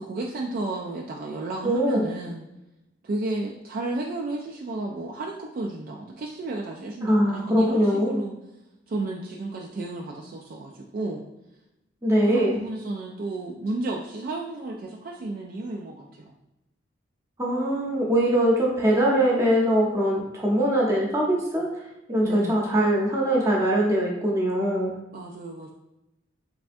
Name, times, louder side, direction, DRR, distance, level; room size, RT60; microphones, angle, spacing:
voice 1, 0.0-2.5 3.0-8.3 8.9-11.2 12.2-16.3 22.2-22.6 25.1-25.7, right 2 dB, 45° right, -1 dB, 0.3 m, -32 dB
voice 2, 1.6-2.1 7.0-8.2 12.0-12.5 17.4-21.7 22.1-24.9, equal, 15° right, -4 dB, 0.7 m, -22 dB
3.3 x 3.3 x 2.6 m, 0.91 s
head